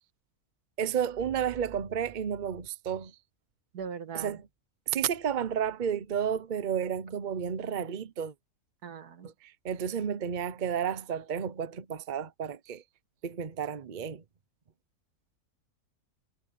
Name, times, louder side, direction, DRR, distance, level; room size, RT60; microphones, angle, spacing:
voice 1, 0.8-3.1 4.1-4.4 4.9-8.3 9.2-12.8 13.2-14.2, right 8 dB, 40° right, 0.8 m, -32 dB
voice 2, 3.7-4.4 8.8-9.3, right 7 dB, 85° right, 2.0 m, -40 dB
omnidirectional pair, 1.6 m